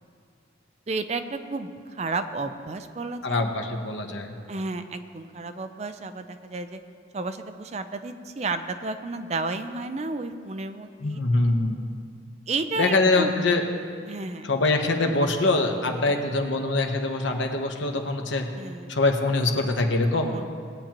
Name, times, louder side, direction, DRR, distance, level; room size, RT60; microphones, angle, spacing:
voice 1, 0.9-3.5 4.5-6.8 7.1-11.2 12.5-13.3 14.1-14.5 18.6-18.9 20.2-20.5, right 3 dB, 35° right, 9 dB, 0.5 m, -32 dB
voice 2, 3.2-4.3 11.0-11.8 12.8-13.6 14.4-18.5 18.9-20.3, left 2 dB, 85° left, 3 dB, 1.1 m, -24 dB
18.0 x 8.8 x 3.0 m, 2.2 s
head